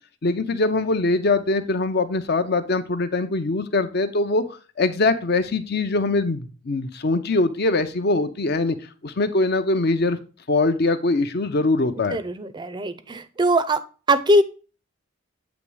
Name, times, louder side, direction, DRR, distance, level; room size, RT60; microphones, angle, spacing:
voice 1, 0.2-4.5 4.8-8.8 9.0-10.2 10.5-12.2, left 2 dB, 50° left, 0.6 m, -22 dB
voice 2, 12.1-13.8 14.1-14.4, right 1 dB, 20° right, 0.5 m, -21 dB
8.1 x 3.1 x 4.8 m
head